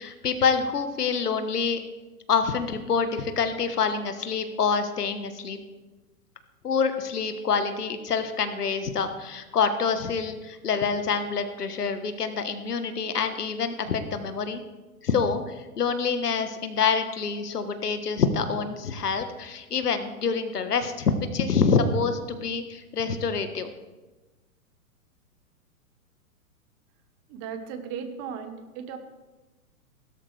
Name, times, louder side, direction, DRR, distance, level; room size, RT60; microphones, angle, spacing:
voice 1, 0.0-1.8 2.3-5.6 6.6-14.6 15.0-23.7, left 5 dB, 80° left, 8 dB, 1.5 m, -26 dB
voice 2, 27.3-29.0, right 7 dB, 35° right, 8 dB, 1.4 m, -36 dB
16.5 x 12.5 x 3.4 m, 1.2 s
hypercardioid pair, 120°, 46 cm